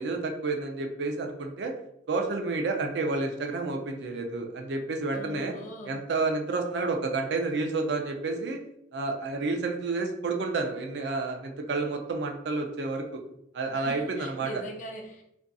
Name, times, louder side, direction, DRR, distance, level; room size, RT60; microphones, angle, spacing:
voice 1, 0.0-1.7 2.1-5.5 5.9-8.6 8.9-13.2 13.5-14.5, right 3 dB, 65° right, 3 dB, 0.4 m, -30 dB
voice 2, 5.1-6.0 13.7-15.2, right 1 dB, 40° left, 1 dB, 0.4 m, -41 dB
2.5 x 2.5 x 2.3 m, 0.76 s
head